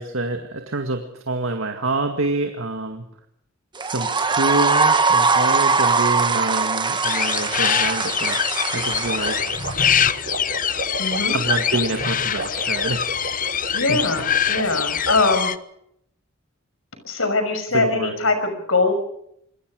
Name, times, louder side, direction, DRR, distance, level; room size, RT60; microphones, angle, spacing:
voice 1, 0.0-3.0 3.8-9.4 11.3-13.2 13.9-14.0 17.7-18.1, right 2 dB, 75° right, 5 dB, 2.1 m, -27 dB
sound 1, 3.7-10.1, right 4 dB, 25° right, 1.5 m, -21 dB
sound 2, 7.0-15.6, left 8 dB, 45° left, 0.9 m, -24 dB
sound 3, 8.8-15.4, right 2 dB, 55° right, 7.8 m, -33 dB
voice 2, 11.0-11.4 13.7-15.5 17.0-18.9, left 3 dB, 80° left, 8 dB, 6.0 m, -22 dB
27.5 x 21.5 x 5.1 m, 0.73 s
head